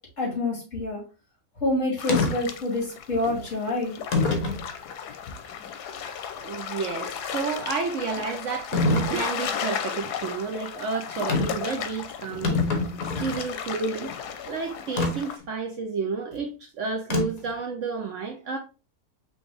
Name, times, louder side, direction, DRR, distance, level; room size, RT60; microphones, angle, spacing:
voice 1, 0.2-1.0 1.6-4.0, left 2 dB, 50° left, 2.8 m, -27 dB
sound 1, 2.0-15.4, left 8 dB, 90° left, 1.2 m, -35 dB
sound 2, 2.1-2.3 3.2-3.4 4.1-4.6 5.3-5.4 8.7-9.1 11.3-11.6 12.0-12.1 12.3-13.4 15.0-15.1 17.1-17.5, left 3 dB, 65° left, 1.5 m, -24 dB
voice 2, 6.4-12.9 13.2-14.1 14.4-18.6, right 4 dB, 60° right, 0.9 m, -31 dB
5.2 x 3.2 x 3.2 m
omnidirectional pair, 1.6 m